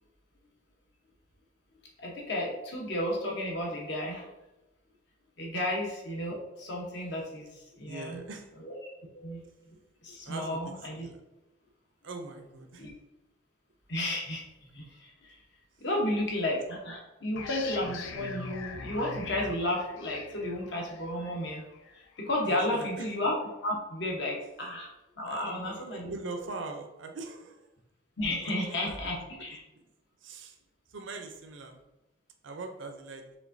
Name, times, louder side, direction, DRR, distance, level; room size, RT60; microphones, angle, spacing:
voice 1, 2.0-4.3 5.4-8.2 8.6-8.8 9.1-9.4 10.0-11.1 12.8-12.9 13.9-14.4 14.7-15.4 15.8-21.6 22.2-23.3 23.6-26.1 28.2-29.6, left 1 dB, 65° left, -1 dB, 1.0 m, -33 dB
voice 2, 7.8-8.5 10.3-11.2 12.0-12.9 22.5-23.1 24.6-24.7 25.3-27.7 28.4-29.0 29.7-29.9 30.2-30.6 30.9-31.8 32.4-33.2, right 3 dB, 75° right, 4 dB, 0.5 m, -42 dB
sound 1, 17.4-22.7, left 4 dB, 85° left, 0.4 m, -43 dB
5.0 x 3.4 x 2.6 m, 0.97 s
head